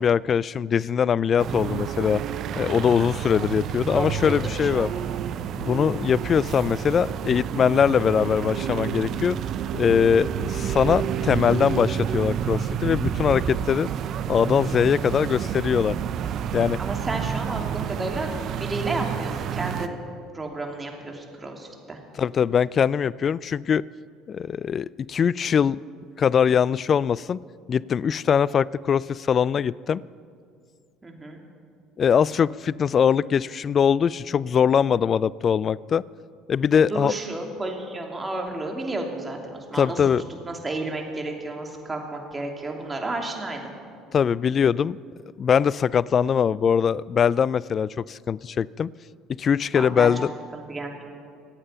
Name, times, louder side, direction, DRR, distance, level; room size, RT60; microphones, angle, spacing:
voice 1, 0.0-2.2 2.6-4.9 5.6-9.4 9.7-13.9 14.3-16.0 16.5-16.8 22.2-23.8 24.3-25.8 26.2-27.4 27.7-30.0 32.0-36.0 36.5-37.1 39.8-40.2 44.1-45.0 45.4-48.9 49.4-50.3, left 7 dB, 45° left, 22 dB, 0.3 m, -22 dB
sound 1, 1.4-19.9, right 8 dB, 55° right, 0.7 m, -29 dB
voice 2, 3.9-4.9 16.8-18.3 18.6-20.0 20.3-22.0 31.0-31.4 36.7-40.0 40.4-43.7 49.7-50.1 50.5-50.9, right 2 dB, 20° right, 2 dB, 2.9 m, -32 dB
24.5 x 8.7 x 5.7 m, 2.2 s
hypercardioid pair, 70°, 0 cm